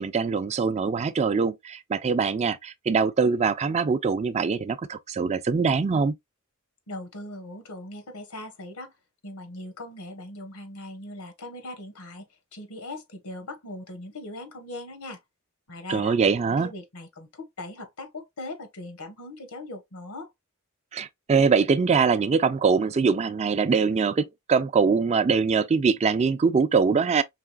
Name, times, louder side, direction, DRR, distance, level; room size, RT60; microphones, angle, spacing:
voice 1, 0.0-6.1 15.9-16.7 20.9-27.2, right 5 dB, 30° right, 0.3 m, -23 dB
voice 2, 6.9-8.9 9.2-12.3 12.5-15.2 15.7-16.2 16.6-20.3, left 2 dB, 90° left, 1.1 m, -39 dB
4.8 x 3.2 x 2.2 m
head